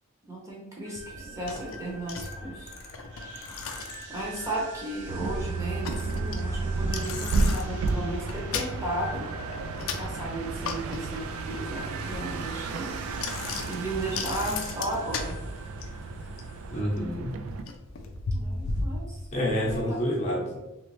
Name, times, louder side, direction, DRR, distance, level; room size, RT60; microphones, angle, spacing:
voice 1, 0.3-2.7 3.3-3.5 4.1-9.3 10.0-13.0 13.6-15.4 18.3-19.2 19.6-20.1, right 1 dB, 15° right, -4 dB, 0.8 m, -35 dB
sound 1, 0.8-16.8, right 2 dB, 55° right, 1.0 m, -44 dB
Bicycle, 1.0-19.8, left 3 dB, 70° left, 0.4 m, -38 dB
sound 2, 5.1-17.6, right 3 dB, 75° right, 0.3 m, -33 dB
voice 2, 16.7-17.4 19.3-20.6, equal, 30° left, -4 dB, 0.8 m, -28 dB
3.1 x 3.0 x 3.0 m, 1.0 s
head